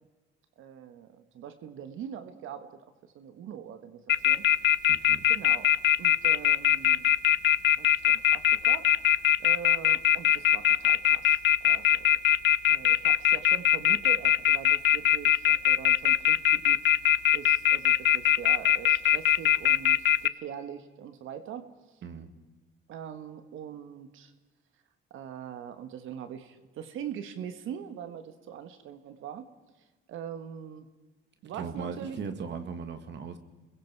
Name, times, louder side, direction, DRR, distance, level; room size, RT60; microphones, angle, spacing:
voice 1, 0.6-4.4 5.3-5.7 6.0-7.1 7.8-8.9 9.4-12.1 12.7-21.7 22.9-24.3 25.1-29.5 30.1-30.9 31.4-32.2, right 8 dB, 85° right, 9 dB, 1.6 m, -42 dB
sound 1, 4.1-20.3, left 10 dB, 65° left, 0.7 m, -21 dB
voice 2, 4.9-5.3 22.0-22.3 31.6-33.4, right 6 dB, 65° right, 8 dB, 2.2 m, -38 dB
29.5 x 21.5 x 4.8 m, 1.2 s
cardioid pair, 90°, 20 cm